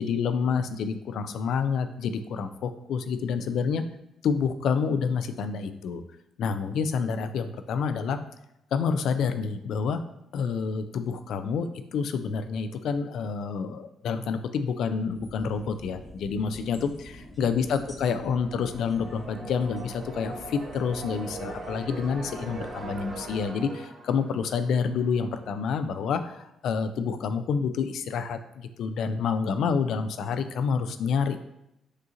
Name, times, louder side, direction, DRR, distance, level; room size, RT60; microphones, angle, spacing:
voice 1, 0.0-3.8 4.2-6.0 6.4-8.2 8.7-10.0 10.3-31.4, left 6 dB, 75° left, 10 dB, 0.4 m, -28 dB
sound 1, 15.1-23.4, equal, 10° left, 1.1 m, -47 dB
sound 2, 17.6-25.4, right 3 dB, 50° right, 1.1 m, -41 dB
6.3 x 2.5 x 2.8 m, 0.85 s
cardioid pair, 90°, 0 cm